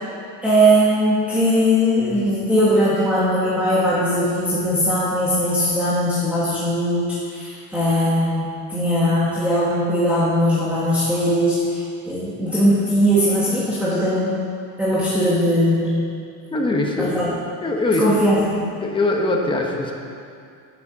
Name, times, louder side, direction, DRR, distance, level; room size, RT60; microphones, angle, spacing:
voice 1, 0.4-14.4 14.8-16.0 17.0-17.3 18.0-18.5, equal, 5° right, -9 dB, 1.5 m, -19 dB
voice 2, 16.5-17.2 17.6-18.3 18.8-19.9, left 2 dB, 15° left, 1 dB, 1.0 m, -22 dB
10.5 x 7.8 x 7.2 m, 2.4 s
cardioid pair, 175°, 37 cm